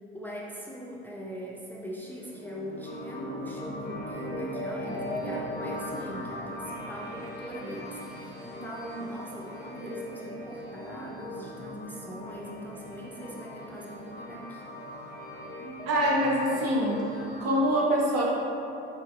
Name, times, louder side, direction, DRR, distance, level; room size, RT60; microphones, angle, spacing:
voice 1, 0.1-14.6, equal, 5° left, -4 dB, 0.4 m, -41 dB
sound 1, 2.1-17.5, left 1 dB, 35° left, 1.1 m, -39 dB
voice 2, 15.9-17.1 17.4-18.2, equal, 55° right, -3 dB, 0.9 m, -24 dB
5.9 x 2.5 x 2.6 m, 2.9 s
hypercardioid pair, 65°, 29 cm